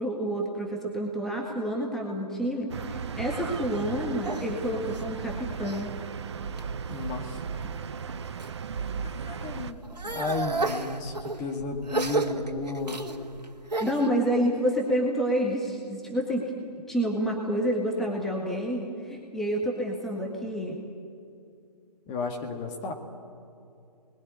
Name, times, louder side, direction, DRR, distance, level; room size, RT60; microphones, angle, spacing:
voice 1, 0.0-5.9 13.8-16.5 16.9-20.8, equal, ahead, -2 dB, 1.8 m, -28 dB
sound 1, 2.7-9.7, right 6 dB, 40° right, 0.9 m, -36 dB
sound 2, 3.5-5.9 6.3-6.9 7.5-8.5 8.9-14.1, right 3 dB, 75° right, 2.1 m, -33 dB
voice 2, 6.9-7.4 9.2-9.8 10.1-13.1 22.1-22.9, left 3 dB, 20° left, 2 dB, 2.0 m, -33 dB
28.0 x 21.0 x 9.7 m, 2.5 s
figure-of-eight pair, 140°, 21 cm